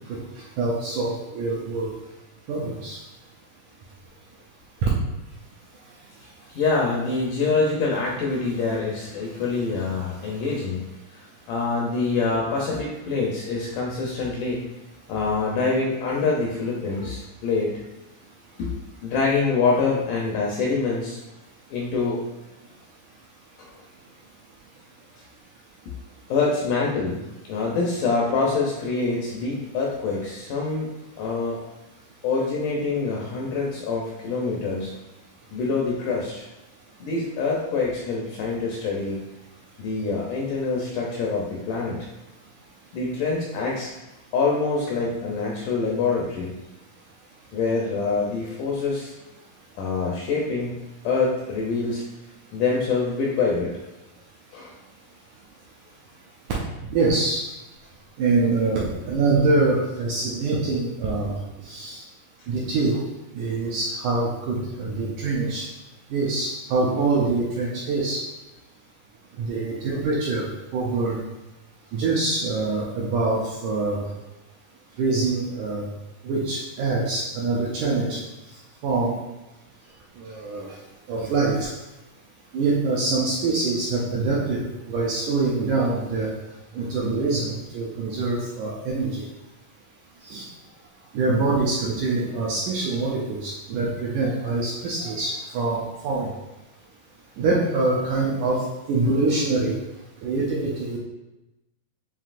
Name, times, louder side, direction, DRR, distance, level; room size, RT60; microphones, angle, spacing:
voice 1, 0.6-1.9 2.5-3.0 4.8-4.9 56.9-57.4 58.2-61.3 61.6-62.0 62.5-63.0 63.3-65.7 66.1-68.2 69.4-70.5 70.7-71.2 71.9-74.0 75.0-75.9 76.2-78.2 78.8-79.1 80.2-80.7 81.1-81.7 82.5-86.3 86.7-89.2 90.2-90.5 91.1-96.3 97.4-99.8 100.2-101.0, right 3 dB, 80° right, -5 dB, 1.8 m, -24 dB
voice 2, 6.5-10.8 11.5-14.6 15.1-17.7 18.6-18.8 19.0-21.2 21.7-22.2 23.6-23.7 26.3-27.2 27.5-30.9 31.2-31.6 32.2-34.9 35.5-36.5 37.0-39.2 39.8-42.1 42.9-43.9 44.3-46.5 47.5-49.1 49.8-50.8 51.0-52.0 52.5-53.8 54.5-54.7, left 4 dB, 80° left, -3 dB, 2.0 m, -25 dB
7.3 x 2.7 x 2.5 m, 0.99 s
omnidirectional pair, 4.1 m